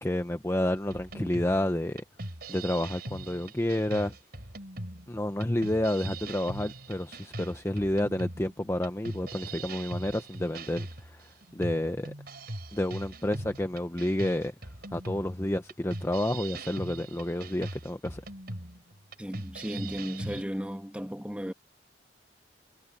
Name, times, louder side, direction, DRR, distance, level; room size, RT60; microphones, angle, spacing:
voice 1, 0.0-2.0 2.5-4.1 5.1-12.1 12.7-14.5 14.9-18.2, left 1 dB, 15° left, 0.7 m, -30 dB
sound 1, 0.9-20.4, right 2 dB, 60° right, 4.2 m, -41 dB
voice 2, 19.2-21.5, equal, 5° right, 1.8 m, -35 dB
head